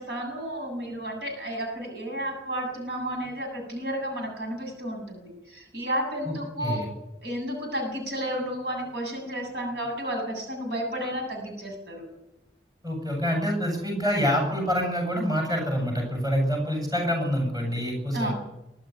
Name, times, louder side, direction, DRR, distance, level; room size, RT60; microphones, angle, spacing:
voice 1, 0.0-6.8 7.2-12.1 18.1-18.3, equal, 70° right, 2 dB, 7.9 m, -32 dB
voice 2, 12.8-18.3, equal, 20° right, 2 dB, 7.7 m, -26 dB
24.0 x 12.0 x 9.5 m, 0.90 s
head